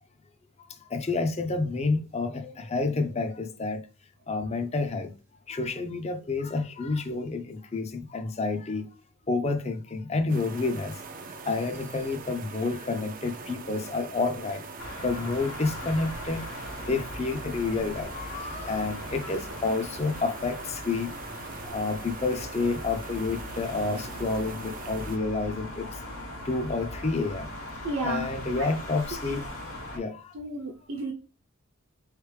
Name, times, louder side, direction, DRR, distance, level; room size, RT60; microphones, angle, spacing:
voice 1, 0.9-3.9 4.3-5.1 5.5-8.9 9.3-11.0 11.3-16.5 16.8-21.1 21.6-26.0 26.4-27.5 28.0-29.4 29.9-30.3, left 3 dB, 30° left, 0.5 m, -29 dB
sound 1, 10.3-25.2, right 4 dB, 40° right, 0.5 m, -42 dB
sound 2, 14.8-30.0, left 1 dB, 75° left, 1.5 m, -40 dB
voice 2, 27.8-28.3 28.6-28.7 29.3-29.4 30.3-31.1, right 1 dB, 65° right, 0.9 m, -32 dB
4.0 x 3.3 x 3.2 m
head